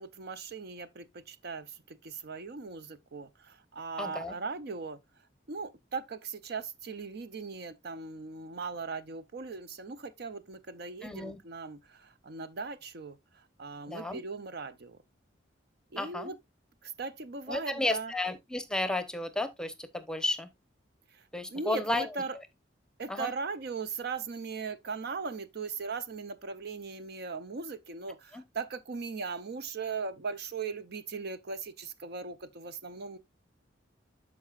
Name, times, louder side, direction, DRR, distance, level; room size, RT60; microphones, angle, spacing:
voice 1, 0.0-5.0 5.5-15.0 15.9-16.4 16.8-18.1 21.1-21.2 21.5-22.4 23.0-33.2, right 4 dB, 60° right, 0.6 m, -39 dB
voice 2, 4.0-4.3 11.0-11.4 13.9-14.2 16.0-16.3 17.5-20.5 21.3-22.1 23.1-23.3 28.3-28.4, left 2 dB, 5° left, 0.8 m, -33 dB
13.0 x 4.8 x 2.4 m
head